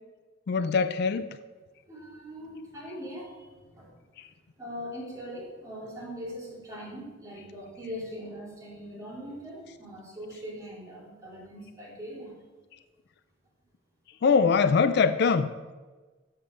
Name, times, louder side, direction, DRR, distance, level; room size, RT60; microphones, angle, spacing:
voice 1, 0.5-1.3 14.2-15.5, left 5 dB, 60° left, 12 dB, 0.4 m, -22 dB
voice 2, 1.9-3.9 4.6-12.3, equal, 20° right, -6 dB, 3.0 m, -41 dB
6.5 x 5.6 x 7.2 m, 1.3 s
head